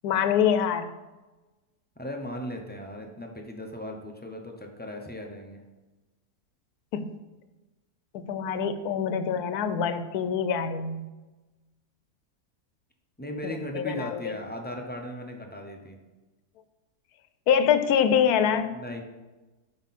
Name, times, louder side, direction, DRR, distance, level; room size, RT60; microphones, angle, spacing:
voice 1, 0.0-0.9 6.9-7.2 8.1-11.0 13.4-14.3 17.5-18.8, left 8 dB, 80° left, 10 dB, 1.1 m, -25 dB
voice 2, 2.0-5.6 13.2-16.0 18.7-19.0, left 1 dB, 15° left, 1 dB, 0.3 m, -37 dB
8.1 x 5.8 x 4.2 m, 1.1 s
omnidirectional pair, 1.6 m